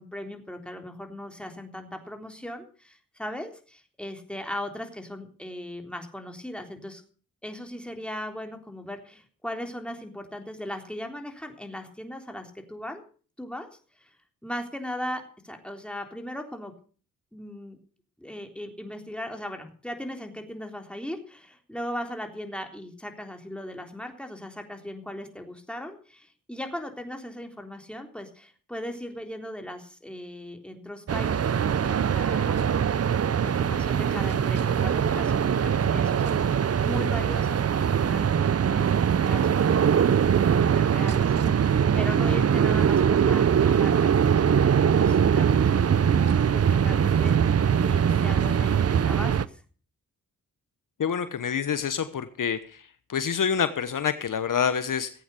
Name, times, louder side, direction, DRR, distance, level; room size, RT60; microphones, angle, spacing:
voice 1, 0.0-7.0 7.4-13.0 13.4-13.7 14.0-14.1 14.4-16.7 17.3-17.8 18.2-32.9 33.4-38.3 38.7-46.3 46.5-47.6 47.8-49.6, left 1 dB, 5° left, 4 dB, 3.6 m, -38 dB
sound 1, 31.1-49.4, right 8 dB, 45° right, 0.7 m, -22 dB
voice 2, 51.0-52.8 53.1-55.1, left 7 dB, 60° left, 12 dB, 1.1 m, -27 dB
16.0 x 8.6 x 6.8 m, 0.41 s
cardioid pair, 50°, 35 cm